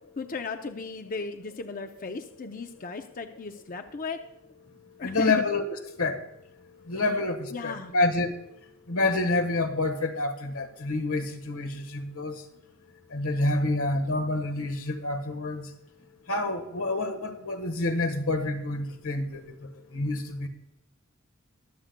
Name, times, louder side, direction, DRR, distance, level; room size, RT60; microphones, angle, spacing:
voice 1, 0.2-4.2 5.0-5.4 7.5-8.0, left 4 dB, 40° left, 6 dB, 0.6 m, -36 dB
voice 2, 5.0-5.7 6.0-6.2 6.9-8.3 8.9-12.4 13.1-15.7 16.3-19.4 19.9-20.5, left 2 dB, 85° left, 7 dB, 1.4 m, -28 dB
22.0 x 7.8 x 2.2 m, 0.86 s
head